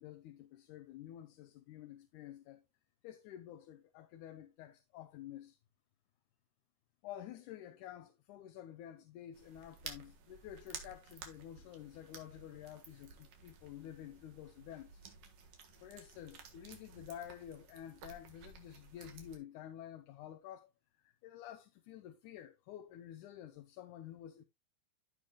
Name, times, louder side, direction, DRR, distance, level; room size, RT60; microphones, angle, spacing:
voice 1, 0.0-2.6 3.0-5.6 7.0-15.0 15.8-20.7 21.0-24.4, left 11 dB, 75° left, 2.1 m, -50 dB
sound 1, 9.3-19.4, right 5 dB, 75° right, 3.1 m, -54 dB
15.0 x 5.1 x 2.2 m
omnidirectional pair, 3.7 m